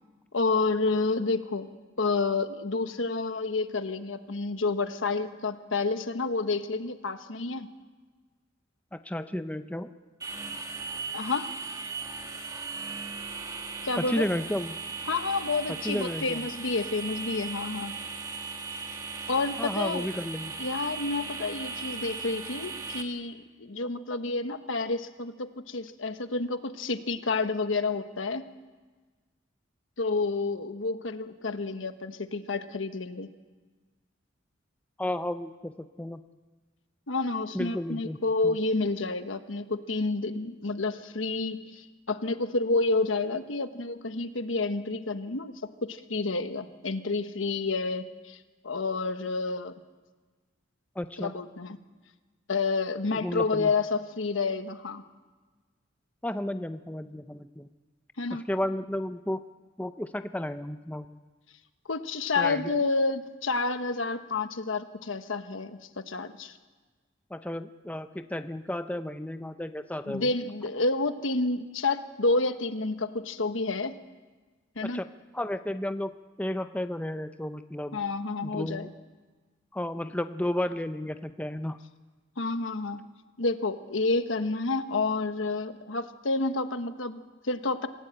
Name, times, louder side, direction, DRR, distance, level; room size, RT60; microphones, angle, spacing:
voice 1, 0.3-1.7 2.0-7.7 11.1-11.5 13.8-14.3 15.1-17.9 19.3-20.1 20.6-28.4 30.0-33.3 37.1-48.4 48.6-49.8 51.2-51.8 52.5-55.0 58.2-58.4 61.9-66.6 70.1-74.0 74.7-75.0 77.9-78.9 82.4-83.0 83.4-87.9, left 3 dB, 80° left, 9 dB, 1.3 m, -29 dB
voice 2, 8.9-9.9 14.0-14.7 15.8-16.4 19.6-20.5 35.0-36.2 37.5-38.2 38.4-38.5 51.0-51.3 53.1-53.7 56.2-57.7 58.5-59.4 59.8-61.1 62.4-62.8 67.3-70.3 74.9-75.1 75.3-76.1 76.4-78.0 78.4-78.9 79.7-81.8, left 1 dB, 5° left, 9 dB, 0.6 m, -32 dB
sound 1, 10.2-23.0, right 4 dB, 20° right, 1.9 m, -37 dB
26.0 x 16.0 x 8.8 m, 1.3 s
head